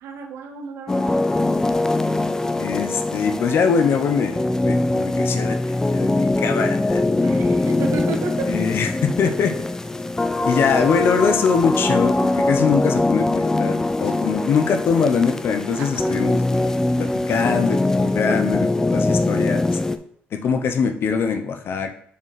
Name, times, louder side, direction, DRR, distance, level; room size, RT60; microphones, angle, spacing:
voice 1, 0.0-1.1 7.2-8.5 11.0-11.2 15.8-16.3, right 5 dB, 85° right, 5 dB, 0.8 m, -32 dB
sound 1, 0.9-20.0, left 2 dB, 15° left, 0.4 m, -22 dB
voice 2, 2.6-7.0 8.5-9.5 10.4-19.7 20.3-21.9, left 6 dB, 60° left, 6 dB, 0.7 m, -22 dB
6.8 x 4.5 x 3.2 m, 0.63 s
cardioid pair, 90°, 4 cm